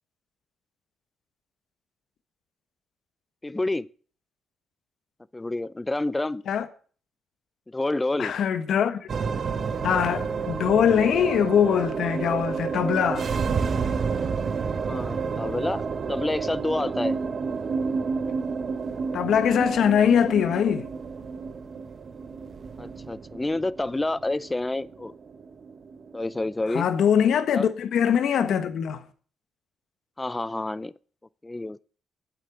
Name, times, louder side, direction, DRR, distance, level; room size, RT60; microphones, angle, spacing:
voice 1, 3.4-3.9 5.3-6.4 7.7-8.3 14.8-15.8 16.1-17.2 22.8-25.1 26.1-26.9 27.5-27.7 30.2-30.9 31.4-31.8, left 2 dB, 15° left, 0.4 m, -28 dB
voice 2, 8.2-9.0 9.8-13.3 19.1-20.8 26.7-29.0, left 8 dB, 70° left, 1.3 m, -22 dB
sound 1, 9.1-27.6, right 5 dB, 45° right, 1.0 m, -30 dB
8.7 x 7.6 x 8.4 m
cardioid pair, 90°, 0 cm